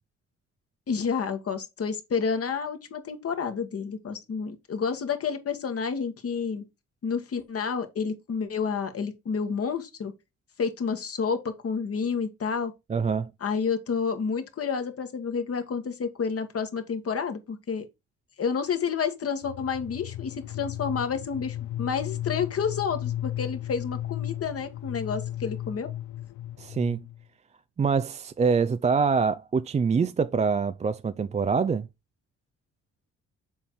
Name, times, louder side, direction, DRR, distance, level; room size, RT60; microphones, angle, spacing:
voice 1, 0.9-6.6 7.0-10.1 10.6-12.7 13.4-17.9 18.4-25.9, left 6 dB, 50° left, 1.7 m, -30 dB
voice 2, 12.9-13.3 26.6-27.0 27.8-31.9, right 5 dB, 25° right, 0.4 m, -25 dB
sound 1, 19.4-27.2, left 13 dB, 85° left, 0.5 m, -35 dB
7.1 x 4.4 x 4.6 m
cardioid pair, 90°, 30 cm